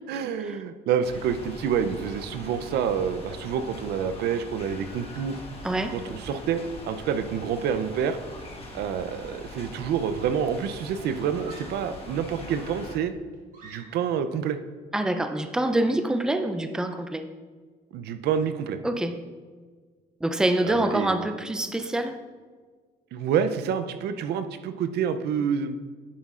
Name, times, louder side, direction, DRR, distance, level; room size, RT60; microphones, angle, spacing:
voice 1, 0.1-5.4 5.9-8.2 8.7-13.1 13.6-14.6 17.9-18.8 20.7-21.2 23.1-25.8, right 7 dB, 75° right, 10 dB, 0.6 m, -28 dB
sound 1, 1.0-13.0, left 1 dB, 35° left, 1.5 m, -42 dB
voice 2, 5.6-6.0 14.9-17.3 18.8-19.2 20.2-22.2, right 1 dB, 5° right, 8 dB, 0.5 m, -26 dB
Screaming, 11.3-11.9 12.5-14.2, right 4 dB, 50° right, 2.0 m, -50 dB
10.0 x 7.3 x 2.4 m, 1.5 s
cardioid pair, 110°, 17 cm